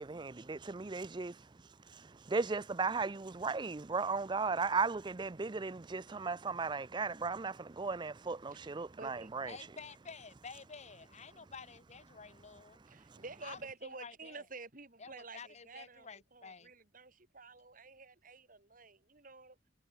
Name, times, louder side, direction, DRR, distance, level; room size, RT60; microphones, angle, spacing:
voice 1, 0.0-1.4 1.8-9.5 13.1-13.2, right 4 dB, 25° right, 0.5 m, -36 dB
voice 2, 9.0-9.3 12.9-19.6, right 3 dB, 45° right, 4.2 m, -50 dB
voice 3, 9.5-12.8 13.4-14.4 15.0-16.7, left 5 dB, 40° left, 1.1 m, -51 dB
head